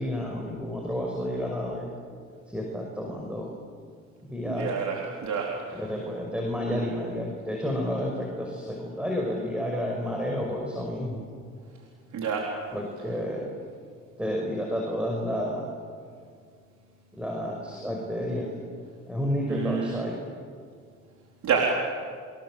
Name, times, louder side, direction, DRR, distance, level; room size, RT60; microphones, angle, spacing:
voice 1, 0.0-1.9 2.5-3.5 4.2-4.8 5.7-11.2 12.7-13.5 14.2-15.7 17.1-18.5 19.1-20.2, equal, 5° right, 0 dB, 5.7 m, -30 dB
voice 2, 4.5-5.5 6.7-6.8 12.1-12.4 19.5-20.0 21.4-21.7, right 6 dB, 70° right, -1 dB, 4.0 m, -27 dB
29.5 x 25.5 x 7.7 m, 2.1 s
cardioid pair, 90°, 30 cm